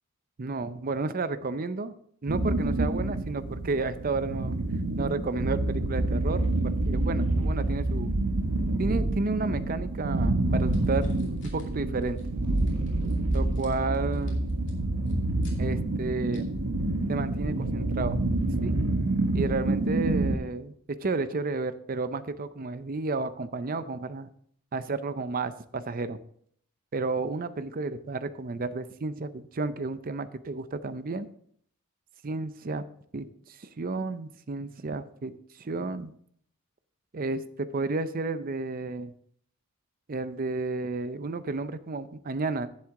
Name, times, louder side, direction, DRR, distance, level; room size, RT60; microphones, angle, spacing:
voice 1, 0.4-1.9 2.2-4.6 5.0-8.1 8.8-11.1 11.4-12.2 13.3-14.4 15.6-16.5 17.1-18.2 18.6-18.7 19.3-20.7 21.0-24.3 24.7-26.2 26.9-31.3 32.2-32.9 33.1-36.1 37.1-39.1 40.1-42.7, right 3 dB, 40° right, 13 dB, 0.5 m, -32 dB
sound 1, 2.3-20.4, right 2 dB, 90° right, 0.9 m, -27 dB
sound 2, 10.7-11.7 12.0-12.3 12.6-15.6 16.3-16.4, left 1 dB, 55° left, 2.6 m, -48 dB
10.5 x 7.7 x 3.7 m, 0.65 s
head